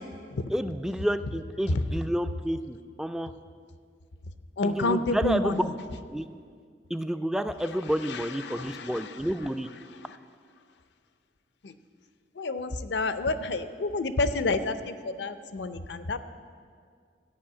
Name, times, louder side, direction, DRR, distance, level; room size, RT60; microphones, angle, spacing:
voice 1, 0.5-3.3 4.6-5.6 6.1-6.3 6.9-9.7, equal, 5° right, 9 dB, 0.3 m, -30 dB
voice 2, 4.6-5.7 7.6-10.2 11.6-11.7 12.4-16.2, left 2 dB, 75° left, 11 dB, 0.6 m, -30 dB
12.5 x 5.6 x 8.5 m, 2.1 s
head